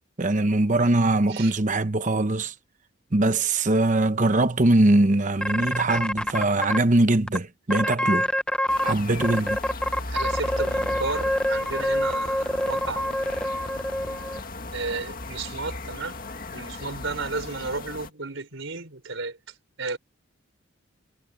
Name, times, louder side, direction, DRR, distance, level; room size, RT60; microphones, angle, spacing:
voice 1, 0.2-2.5 3.1-8.3 8.8-9.6, right 2 dB, 40° right, 0.9 m, -22 dB
sound 1, 5.4-6.8 7.3-7.4 7.7-8.9 9.2-14.4, equal, 5° left, 0.7 m, -26 dB
sound 2, 8.7-18.1, left 2 dB, 45° left, 2.1 m, -37 dB
voice 2, 10.1-13.6 14.7-16.2 16.5-20.0, right 3 dB, 70° right, 4.0 m, -33 dB
head